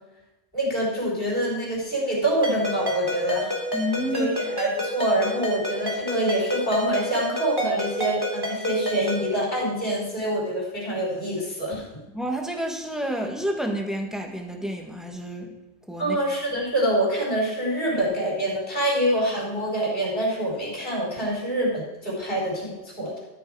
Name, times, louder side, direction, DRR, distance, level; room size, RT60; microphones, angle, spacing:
voice 1, 0.5-3.5 4.1-11.8 16.0-23.2, right 1 dB, 50° left, -3 dB, 4.4 m, -26 dB
Ringtone, 2.4-9.3, equal, 20° right, 2.8 m, -29 dB
voice 2, 3.7-4.5 12.1-15.6 15.9-16.2, equal, ahead, 1 dB, 1.4 m, -29 dB
13.0 x 8.5 x 4.8 m, 1.0 s
omnidirectional pair, 1.3 m